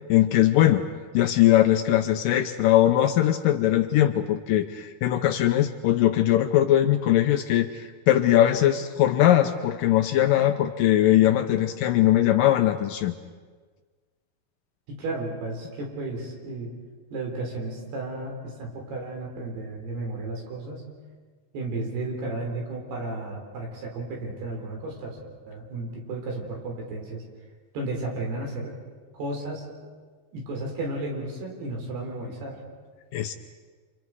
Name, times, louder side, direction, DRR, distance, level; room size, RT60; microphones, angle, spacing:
voice 1, 0.1-0.8 1.1-13.1 33.1-33.3, left 13 dB, 75° left, 7 dB, 2.1 m, -21 dB
voice 2, 14.9-16.7 17.1-20.9 21.5-25.2 25.5-27.2 27.7-28.7 29.1-29.7 30.3-32.6, right 2 dB, 85° right, 1 dB, 6.0 m, -33 dB
28.0 x 27.5 x 4.8 m, 1.5 s
omnidirectional pair, 4.5 m